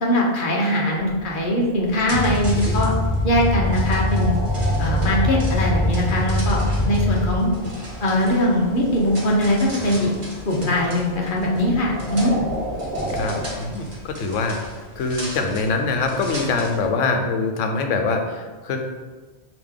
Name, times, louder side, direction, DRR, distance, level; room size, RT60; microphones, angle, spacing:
voice 1, 0.0-2.9 3.2-4.4 4.8-6.6 6.8-7.5 8.0-10.1 10.5-12.3, left 1 dB, 50° left, -2 dB, 0.9 m, -21 dB
sound 1, 0.9-13.5, equal, 65° right, 1.1 m, -34 dB
sound 2, 1.8-16.9, equal, 30° right, 0.8 m, -38 dB
sound 3, 2.1-7.4, left 1 dB, 15° left, 0.7 m, -22 dB
voice 2, 2.5-2.9 13.1-18.8, left 3 dB, 85° left, 4 dB, 1.0 m, -24 dB
5.0 x 2.9 x 3.6 m, 1.3 s
omnidirectional pair, 1.3 m